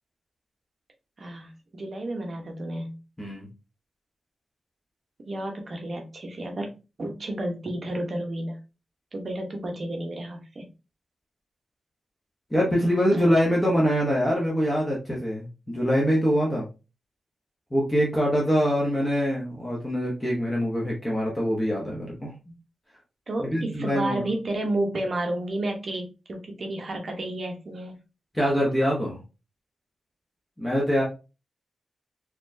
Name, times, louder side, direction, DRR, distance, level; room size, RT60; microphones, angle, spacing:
voice 1, 1.2-2.9 5.3-8.6 9.1-10.7 13.1-13.3 23.3-28.0, right 1 dB, 40° right, 2 dB, 0.9 m, -31 dB
voice 2, 12.5-16.7 17.7-22.3 23.5-24.2 28.3-29.2 30.6-31.0, equal, 10° left, -3 dB, 0.9 m, -24 dB
4.2 x 3.0 x 2.6 m, 0.30 s
wide cardioid pair, 175°, 0 cm